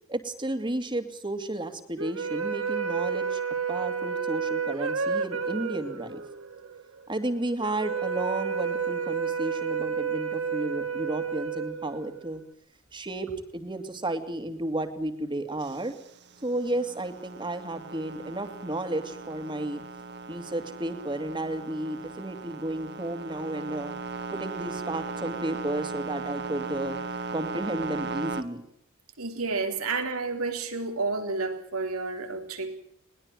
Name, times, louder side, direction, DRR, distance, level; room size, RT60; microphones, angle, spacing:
voice 1, 0.1-3.4 3.7-6.2 7.1-12.4 12.9-15.9 16.4-19.8 20.3-23.9 24.3-27.0 27.3-28.6, right 1 dB, 20° right, 2.5 m, -32 dB
sound 1, 2.0-12.4, right 6 dB, 70° right, 2.2 m, -31 dB
sound 2, 15.6-28.4, right 4 dB, 50° right, 1.7 m, -37 dB
voice 2, 29.2-32.8, right 3 dB, 90° right, 3.9 m, -30 dB
21.5 x 20.0 x 7.6 m
head